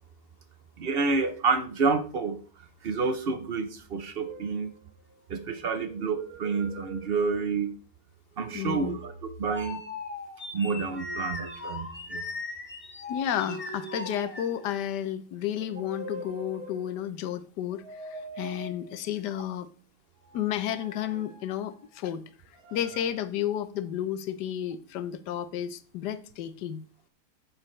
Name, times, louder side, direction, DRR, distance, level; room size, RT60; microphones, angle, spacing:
voice 1, 0.8-2.4 2.8-4.7 5.3-7.7 8.4-9.8 10.5-12.2, right 4 dB, 50° right, 0.8 m, -29 dB
sound 1, 4.3-5.2 5.7-7.7 8.3-9.3 10.6-12.0 13.2-14.9 15.4-17.1 17.7-19.3 20.2-22.0 22.5-23.1, right 2 dB, 65° right, 1.9 m, -45 dB
voice 2, 8.5-9.0 13.1-19.7 20.3-22.2 22.7-26.8, left 10 dB, 85° left, 1.3 m, -32 dB
sound 2, 8.5-14.9, left 3 dB, 25° left, 1.2 m, -39 dB
9.2 x 7.6 x 3.2 m
omnidirectional pair, 1.8 m